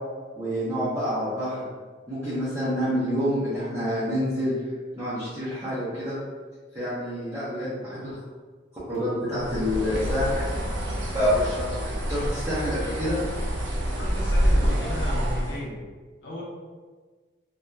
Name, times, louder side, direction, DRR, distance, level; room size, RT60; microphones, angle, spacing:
voice 1, 0.4-1.7 2.1-6.2 6.7-8.2 8.9-10.7 11.1-13.2, equal, 15° right, -12 dB, 0.6 m, -28 dB
Bird, 9.4-15.6, equal, 70° right, 0.5 m, -27 dB
voice 2, 13.8-15.8 16.2-16.4, left 1 dB, 70° left, -4 dB, 0.6 m, -35 dB
2.7 x 2.2 x 2.2 m, 1.4 s
head